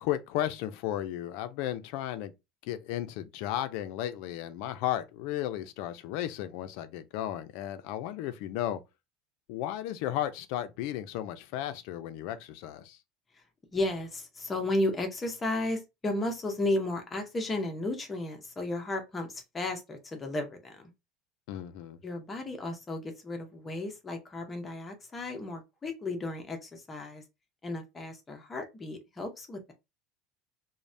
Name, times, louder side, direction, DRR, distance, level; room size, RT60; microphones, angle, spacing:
voice 1, 0.0-2.3 2.6-8.8 9.5-13.0 21.5-22.0, left 12 dB, 60° left, 0.4 m, -34 dB
voice 2, 13.7-20.9 22.0-27.2 27.6-29.7, left 2 dB, 15° left, 0.6 m, -34 dB
3.2 x 2.0 x 2.5 m
cardioid pair, 170°, 0 cm